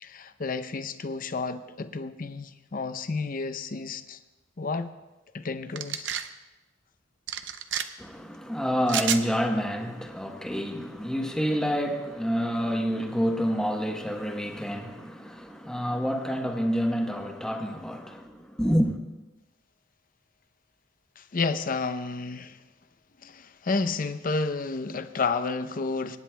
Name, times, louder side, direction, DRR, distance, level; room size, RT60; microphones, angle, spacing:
voice 1, 0.0-4.2 4.6-4.9 5.3-6.1 21.2-22.6 23.2-26.2, left 4 dB, 50° left, 0.6 m, -31 dB
sound 1, 5.8-6.3 7.3-7.8 8.9-9.2, right 9 dB, 75° right, 0.7 m, -29 dB
voice 2, 8.0-19.0, equal, 5° left, 1.1 m, -28 dB
26.5 x 10.0 x 2.3 m
head